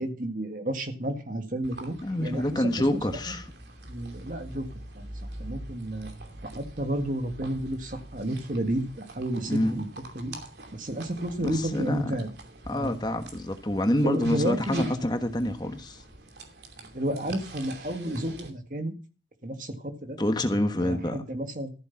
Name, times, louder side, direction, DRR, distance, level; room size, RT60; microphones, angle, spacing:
voice 1, 0.0-3.2 3.9-4.7 4.9-5.1 5.4-6.1 6.4-9.9 10.1-10.4 10.7-12.3 12.7-13.0 14.0-14.9 16.9-18.9 19.4-20.2 20.8-21.7, right 1 dB, 50° right, 1.8 m, -31 dB
sound 1, 1.6-18.5, right 2 dB, 75° right, 2.8 m, -44 dB
voice 2, 2.0-3.4 9.5-9.8 11.4-12.0 12.7-16.0 20.2-21.2, left 1 dB, 25° left, 1.2 m, -27 dB
14.0 x 8.0 x 5.8 m
head